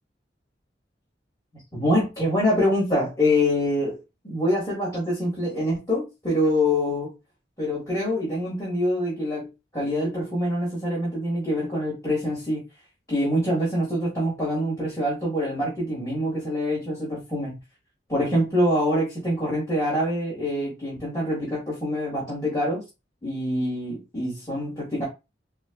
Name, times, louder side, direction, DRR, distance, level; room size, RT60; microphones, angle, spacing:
voice 1, 1.7-7.1 7.6-12.6 13.1-17.6 18.1-22.8 23.2-25.0, left 1 dB, 20° left, 1.6 m, -25 dB
4.5 x 2.3 x 2.3 m
head